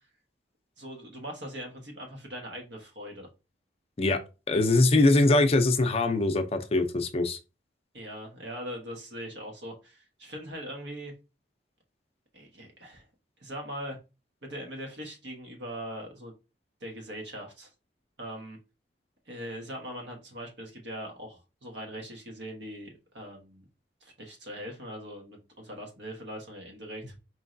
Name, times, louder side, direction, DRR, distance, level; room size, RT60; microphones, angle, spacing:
voice 1, 0.8-3.3 7.9-11.1 12.3-13.0 13.4-14.0 14.4-16.3 16.8-17.7 18.2-18.6 19.3-23.7 24.0-27.2, equal, 80° right, 1.2 m, -41 dB
voice 2, 4.5-7.4, left 2 dB, 35° left, 0.5 m, -22 dB
4.5 x 3.2 x 2.6 m
head